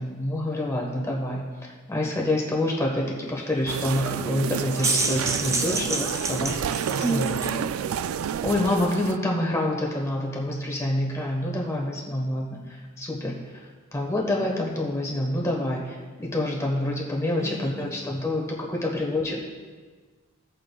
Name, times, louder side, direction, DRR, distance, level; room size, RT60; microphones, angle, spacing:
voice 1, 0.0-6.6 6.9-7.3 8.4-13.6 13.9-19.4, left 1 dB, 15° left, -2 dB, 1.2 m, -27 dB
sound 1, 3.7-9.2, right 8 dB, 85° right, 0.3 m, -30 dB
sound 2, 4.6-7.6, right 3 dB, 15° right, 0.4 m, -28 dB
voice 2, 7.0-7.7 17.4-18.0, right 2 dB, 45° right, 5 dB, 0.7 m, -31 dB
16.5 x 8.6 x 2.3 m, 1.5 s
head